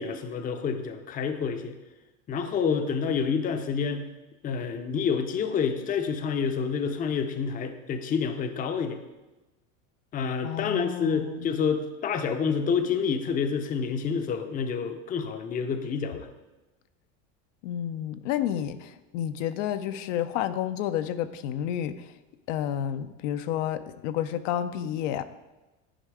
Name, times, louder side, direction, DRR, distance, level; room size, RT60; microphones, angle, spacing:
voice 1, 0.0-1.7 2.3-4.1 4.4-9.0 10.1-16.3, left 6 dB, 20° left, 8 dB, 0.5 m, -28 dB
voice 2, 10.4-11.6 17.6-22.1 22.5-25.2, left 10 dB, 70° left, 11 dB, 0.6 m, -30 dB
10.0 x 4.5 x 4.7 m, 1.1 s
supercardioid pair, 130°, 38 cm